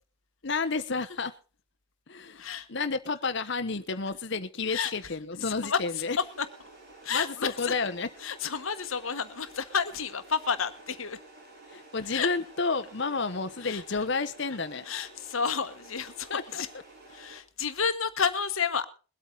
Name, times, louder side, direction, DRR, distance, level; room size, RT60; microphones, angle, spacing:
voice 1, 0.4-1.3 2.1-6.2 7.1-8.1 11.7-14.8 16.3-16.6, left 4 dB, 55° left, 1.0 m, -31 dB
voice 2, 5.4-5.8 6.4-6.5 7.0-7.7 8.2-11.2 12.1-12.3 13.6-14.0 14.8-16.7 17.1-18.9, left 6 dB, 80° left, 1.3 m, -31 dB
sound 1, 6.2-17.4, right 2 dB, 50° right, 3.5 m, -51 dB
22.0 x 8.4 x 3.9 m
head